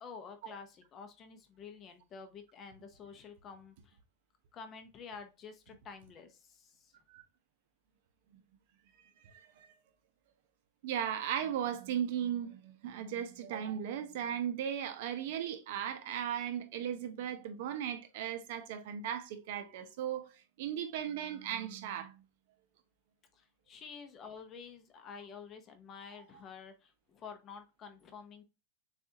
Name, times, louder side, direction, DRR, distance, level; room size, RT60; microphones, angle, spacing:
voice 1, 0.0-4.0 4.5-6.9 23.3-28.4, left 5 dB, 25° left, 0.7 m, -50 dB
voice 2, 9.2-9.7 10.8-20.3 20.6-22.2, right 9 dB, 55° right, 0.8 m, -37 dB
6.8 x 2.5 x 2.8 m
supercardioid pair, 155°, 0 cm